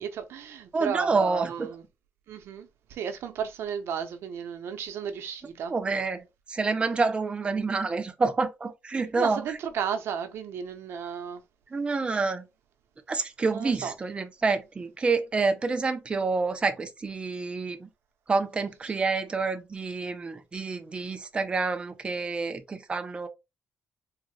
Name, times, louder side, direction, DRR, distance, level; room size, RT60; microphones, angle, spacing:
voice 1, 0.0-1.8 2.3-5.7 9.2-11.4 13.4-13.9 18.9-19.0, right 7 dB, 80° right, 0.6 m, -33 dB
voice 2, 0.7-1.7 5.7-9.4 11.7-12.4 13.1-17.9 18.3-23.3, right 4 dB, 25° right, 0.5 m, -28 dB
3.7 x 2.1 x 3.1 m
cardioid pair, 140°, 4 cm